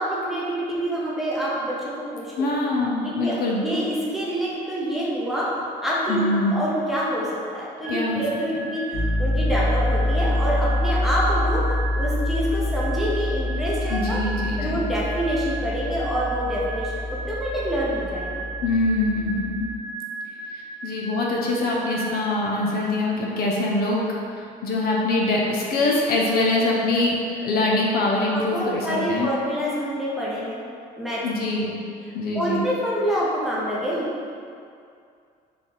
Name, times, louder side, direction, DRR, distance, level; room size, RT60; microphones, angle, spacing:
voice 1, 0.0-2.5 3.2-5.5 5.8-7.3 7.5-14.2 14.6-18.5 28.3-30.6 31.0-31.2 32.3-34.1, equal, ahead, -7 dB, 0.7 m, -26 dB
voice 2, 2.4-3.7 6.1-6.5 7.9-8.2 8.5-8.7 13.9-14.8 18.6-19.7 20.5-24.0 24.3-29.3 31.2-31.7 32.1-32.7, left 2 dB, 65° left, -2 dB, 0.7 m, -24 dB
sound 1, 7.8-23.4, right 3 dB, 85° right, 0.5 m, -37 dB
Piano, 8.9-19.8, left 1 dB, 65° right, 0.9 m, -26 dB
3.4 x 2.3 x 4.0 m, 2.4 s
cardioid pair, 110°, 17 cm